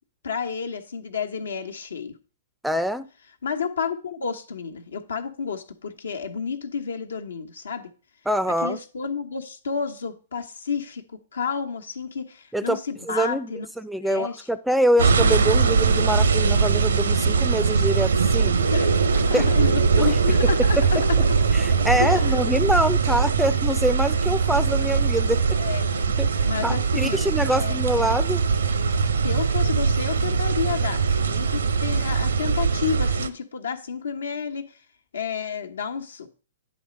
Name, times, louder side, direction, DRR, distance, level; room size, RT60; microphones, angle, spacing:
voice 1, 0.2-2.1 3.4-7.9 8.6-11.0 11.3-13.7 14.0-14.4 18.7-21.4 22.0-22.4 25.5-26.0 26.4-27.3 27.5-27.8 29.2-34.6 35.1-36.3, left 6 dB, 80° left, 1.1 m, -30 dB
voice 2, 2.6-3.1 8.3-8.8 12.5-12.8 13.1-13.5 13.8-18.5 19.3-19.5 20.0-20.2 20.4-20.5 20.8-20.9 21.5-25.6 26.2-26.3 26.6-28.4, right 1 dB, ahead, 0.4 m, -24 dB
sound 1, 15.0-33.3, right 5 dB, 80° right, 0.7 m, -21 dB
9.8 x 3.3 x 5.2 m
hypercardioid pair, 120°, 0 cm